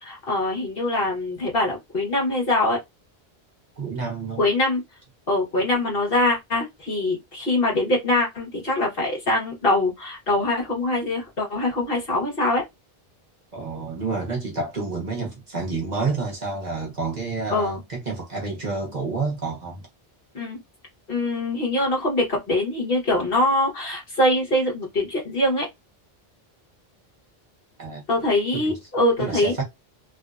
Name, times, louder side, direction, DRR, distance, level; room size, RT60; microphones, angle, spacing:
voice 1, 0.0-2.8 4.4-4.8 5.3-12.6 17.5-17.8 20.3-20.6 21.1-25.7 28.1-29.5, left 1 dB, 65° left, 1.5 m, -23 dB
voice 2, 3.8-4.4 13.5-19.9 27.8-28.0 28.5-28.8 29.2-29.6, right 3 dB, 45° right, 1.1 m, -29 dB
3.2 x 2.7 x 2.4 m
omnidirectional pair, 1.0 m